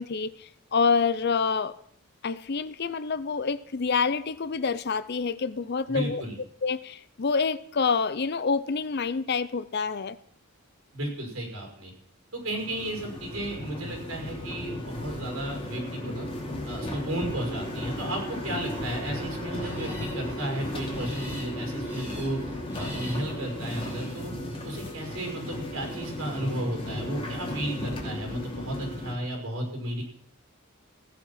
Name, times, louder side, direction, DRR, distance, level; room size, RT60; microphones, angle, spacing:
voice 1, 0.0-1.7 2.2-6.2 6.6-10.2, left 5 dB, 50° left, 16 dB, 0.6 m, -27 dB
voice 2, 5.9-6.4 10.9-11.9 12.3-16.3 16.6-22.4 22.8-24.3 24.6-30.0, right 1 dB, 70° right, 1 dB, 5.8 m, -33 dB
sound 1, 12.4-29.1, left 1 dB, 25° left, 2.7 m, -35 dB
sound 2, 19.2-26.1, equal, 10° right, 5.1 m, -48 dB
16.0 x 9.5 x 5.8 m, 0.65 s
head